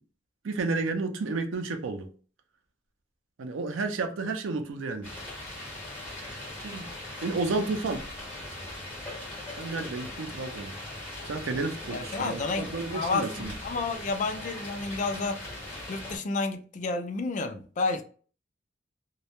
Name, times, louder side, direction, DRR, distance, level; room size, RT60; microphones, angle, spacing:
voice 1, 0.4-2.1 3.4-5.1 6.6-6.9 7.2-8.0 9.6-10.8 11.3-13.5, right 3 dB, 90° right, 0.4 m, -31 dB
sound 1, 5.0-16.2, left 1 dB, 10° left, 1.1 m, -40 dB
voice 2, 11.9-15.4 15.9-18.0, left 3 dB, 40° left, 0.3 m, -31 dB
2.2 x 2.0 x 2.8 m
head